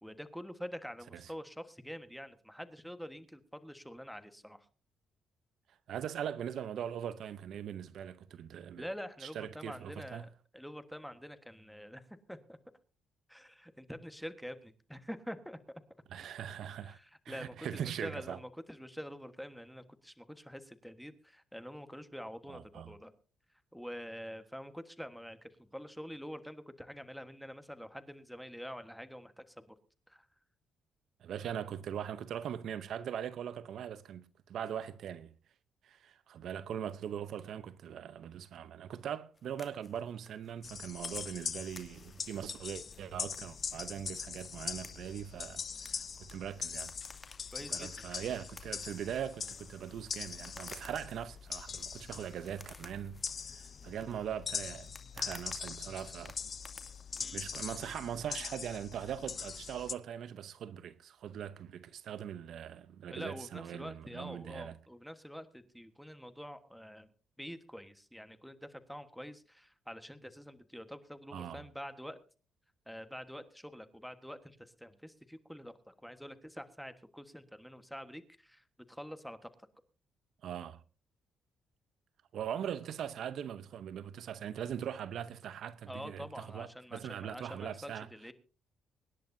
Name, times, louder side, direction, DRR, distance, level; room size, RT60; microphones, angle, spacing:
voice 1, 0.0-4.7 8.8-12.6 13.3-15.6 16.8-23.1 23.7-29.7 30.1-30.3 47.5-48.0 57.2-57.4 63.1-67.1 67.4-72.2 72.9-79.5 85.9-88.3, equal, ahead, 1.4 m, -46 dB
voice 2, 5.9-8.8 9.2-10.3 16.1-17.0 17.2-18.4 22.5-22.9 31.2-35.3 35.8-46.9 47.7-56.4 57.3-64.8 71.3-71.6 80.4-80.8 82.3-88.1, right 9 dB, 70° right, 0.7 m, -41 dB
sound 1, 39.3-58.0, left 3 dB, 25° left, 2.4 m, -57 dB
sound 2, 40.6-59.9, left 6 dB, 45° left, 0.7 m, -42 dB
24.5 x 10.5 x 2.7 m
cardioid pair, 90°, 0 cm